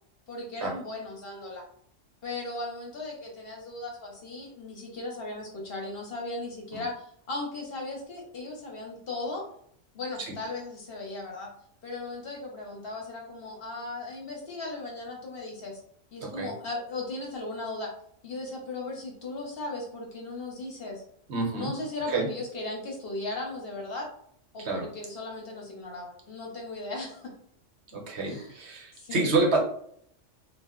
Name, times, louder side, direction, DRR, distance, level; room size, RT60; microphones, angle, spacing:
voice 1, 0.3-1.6 2.2-9.5 9.9-11.5 11.8-15.8 16.1-17.9 18.2-21.0 21.5-24.1 24.5-27.3 27.9-28.0 28.2-28.5 28.9-29.4, left 2 dB, 55° left, -1 dB, 0.9 m, -37 dB
voice 2, 16.2-16.5 21.3-21.7 22.1-22.3 24.6-24.9 27.9-29.6, right 3 dB, 65° right, 0 dB, 0.9 m, -28 dB
2.2 x 2.1 x 3.6 m, 0.64 s
omnidirectional pair, 1.3 m